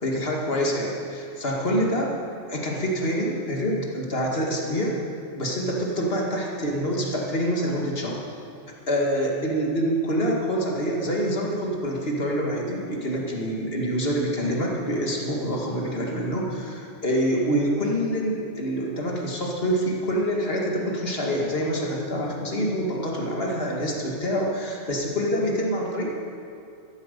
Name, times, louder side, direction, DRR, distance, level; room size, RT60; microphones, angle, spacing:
voice 1, 0.0-2.1 2.5-5.0 5.3-8.2 8.9-26.1, equal, 55° left, -2 dB, 2.3 m, -26 dB
13.5 x 10.5 x 6.7 m, 2.5 s
omnidirectional pair, 1.2 m